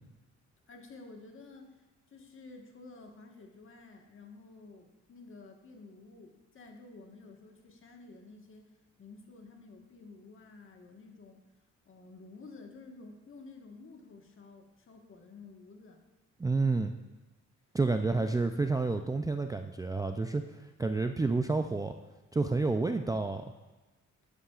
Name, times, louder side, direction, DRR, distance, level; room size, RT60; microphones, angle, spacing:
voice 1, 0.7-8.7 9.0-11.4 11.8-16.0 18.1-18.3, left 3 dB, 45° left, 2 dB, 1.5 m, -52 dB
voice 2, 16.4-16.9 17.7-22.0 22.3-23.4, right 3 dB, 10° right, 5 dB, 0.4 m, -29 dB
11.5 x 8.4 x 2.4 m, 1.2 s
cardioid pair, 90°, 30 cm